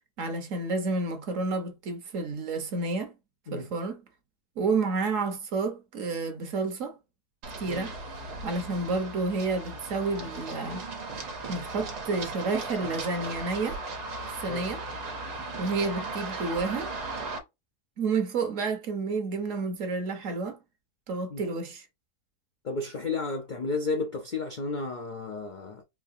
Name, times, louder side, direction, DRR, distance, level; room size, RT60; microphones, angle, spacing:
voice 1, 0.2-3.1 3.5-4.0 4.6-7.0 7.6-8.0 8.4-10.8 11.5-13.8 14.4-14.8 15.6-16.9 18.0-20.6 21.1-21.9, right 3 dB, 60° right, 1.2 m, -30 dB
Run, 7.4-17.4, right 3 dB, 85° right, 1.6 m, -37 dB
voice 2, 22.6-25.8, left 3 dB, 60° left, 0.4 m, -32 dB
4.7 x 2.7 x 2.6 m
omnidirectional pair, 1.7 m